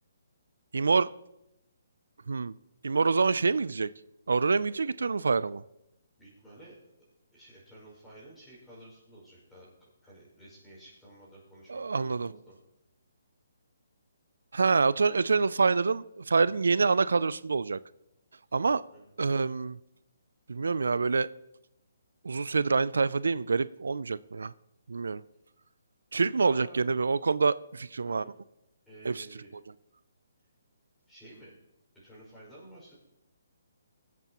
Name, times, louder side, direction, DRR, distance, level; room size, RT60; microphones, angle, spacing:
voice 1, 0.7-1.1 2.3-2.5 2.8-3.9 4.3-5.6 11.7-12.3 14.5-17.8 18.5-18.8 19.2-19.8 20.5-21.3 22.2-24.5 24.9-25.2 26.1-28.2 29.0-29.3 29.5-29.6, right 4 dB, 85° right, 18 dB, 0.3 m, -26 dB
voice 2, 6.2-6.8 7.3-9.7 10.0-12.5 18.9-19.1 26.3-26.9 28.0-28.3 28.8-29.5 31.1-31.6 31.9-32.9, right 1 dB, 5° left, -7 dB, 5.2 m, -52 dB
23.0 x 8.3 x 2.9 m, 0.90 s
hypercardioid pair, 165°, 0 cm